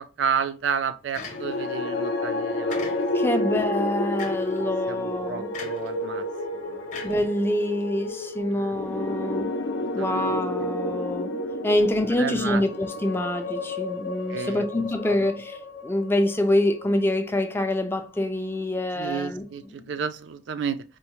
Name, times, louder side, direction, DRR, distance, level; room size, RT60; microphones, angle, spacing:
voice 1, 0.0-2.8 4.6-6.3 6.5-6.9 8.5-8.7 9.8-10.2 12.1-12.6 14.3-14.7 15.0-15.3 19.0-20.8, right 6 dB, 75° right, 0.4 m, -31 dB
sound 1, 1.1-1.8 2.7-3.4 4.2-4.6 5.5-5.9 6.9-7.8, left 5 dB, 40° left, 0.7 m, -40 dB
sound 2, 1.3-17.6, left 2 dB, 80° left, 0.4 m, -31 dB
voice 2, 3.1-5.5 7.0-9.5 10.0-11.3 11.6-19.4, left 1 dB, 10° left, 0.4 m, -26 dB
4.4 x 2.1 x 2.9 m
head